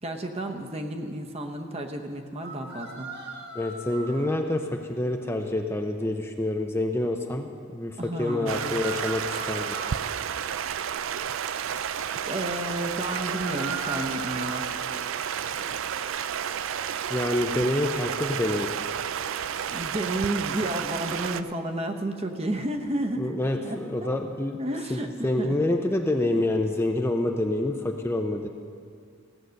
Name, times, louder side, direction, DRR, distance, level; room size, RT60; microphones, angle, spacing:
voice 1, 0.0-3.1 8.0-8.8 12.3-14.7 19.7-23.3 23.6-24.1 24.6-25.6, right 1 dB, 30° right, 4 dB, 0.9 m, -31 dB
sound 1, 2.4-4.2 8.2-10.0 13.1-14.7, right 3 dB, 55° right, 1.6 m, -39 dB
voice 2, 3.5-9.8 17.1-18.7 23.2-24.6 24.9-28.5, left 1 dB, 10° left, 3 dB, 0.5 m, -27 dB
Stream, 8.5-21.4, right 8 dB, 70° right, 0.4 m, -31 dB
16.0 x 8.1 x 6.4 m, 2.2 s
head